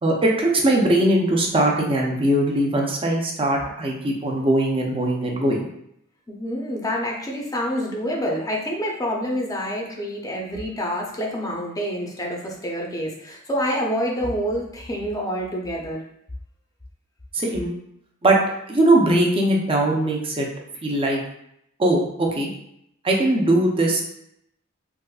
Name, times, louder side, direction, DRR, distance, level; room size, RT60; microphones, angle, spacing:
voice 1, 0.0-5.7 17.3-17.7 18.2-18.4 18.7-20.5 20.8-21.2 21.8-22.5 23.0-24.0, right 1 dB, 25° right, 0 dB, 0.5 m, -20 dB
voice 2, 6.3-16.0, equal, 15° left, -1 dB, 0.5 m, -27 dB
3.5 x 2.5 x 2.3 m, 0.75 s
head